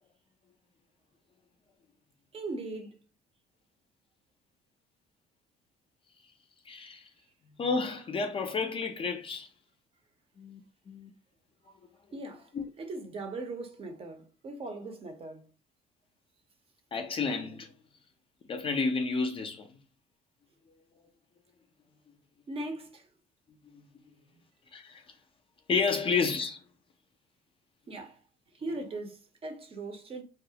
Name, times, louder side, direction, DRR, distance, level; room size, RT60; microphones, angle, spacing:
voice 1, 2.3-3.0 12.1-12.5 12.8-15.5 22.5-23.1 27.9-28.2 28.5-30.2, right 2 dB, 35° right, 0.6 m, -39 dB
voice 2, 6.7-7.1 7.6-9.5 10.4-10.6 10.9-11.1 12.5-12.7 16.9-17.7 18.5-19.7 24.7-25.0 25.7-26.6, left 4 dB, 30° left, 0.4 m, -30 dB
2.3 x 2.0 x 2.7 m
cardioid pair, 110°, 17 cm